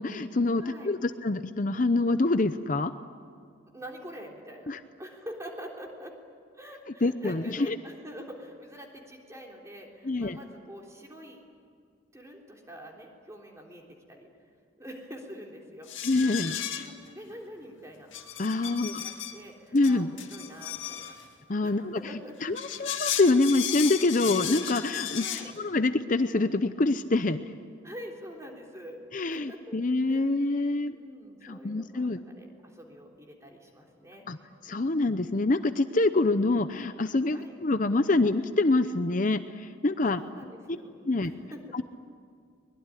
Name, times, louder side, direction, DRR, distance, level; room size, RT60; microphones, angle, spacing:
voice 1, 0.0-2.9 4.7-4.8 7.0-7.7 10.0-10.4 16.0-16.6 18.4-19.0 19.7-20.1 21.5-22.0 22.4-27.4 29.1-31.0 31.4-32.2 34.3-34.4 34.6-40.2 41.1-41.3 41.7-41.8, left 2 dB, 40° left, 10 dB, 0.7 m, -26 dB
voice 2, 0.6-0.9 3.7-4.7 5.0-6.1 6.5-11.4 12.1-14.3 14.8-15.9 16.2-18.1 18.6-21.2 21.6-22.4 22.8-22.9 25.1-25.5 27.8-29.8 30.0-34.3 37.3-37.5 40.1-41.8, equal, 15° right, 0 dB, 3.6 m, -45 dB
sound 1, 15.9-17.1 18.1-19.4 19.8-21.3 22.4-25.5, left 10 dB, 80° left, 2.0 m, -35 dB
23.5 x 21.5 x 9.9 m, 2.2 s
head